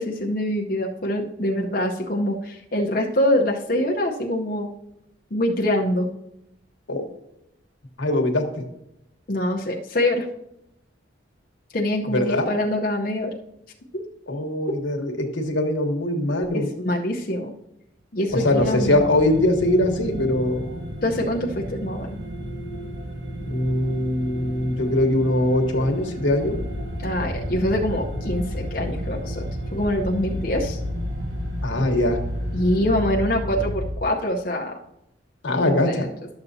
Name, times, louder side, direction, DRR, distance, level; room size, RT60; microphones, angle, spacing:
voice 1, 0.0-4.7 5.3-6.1 9.3-10.3 11.7-13.3 13.9-14.0 16.5-17.5 18.1-19.0 21.0-22.2 27.0-29.5 29.7-30.8 32.5-34.8 35.9-36.1, left 1 dB, 50° left, -1 dB, 0.8 m, -24 dB
voice 2, 8.0-8.6 12.1-12.5 14.3-16.7 18.4-20.8 23.4-26.6 31.6-32.2 35.4-36.1, left 1 dB, 90° left, 3 dB, 1.3 m, -22 dB
sound 1, 18.3-33.1, right 1 dB, 70° right, 1.1 m, -35 dB
sound 2, 26.4-33.9, left 1 dB, 45° right, 2.4 m, -31 dB
12.0 x 7.0 x 2.7 m, 0.82 s
head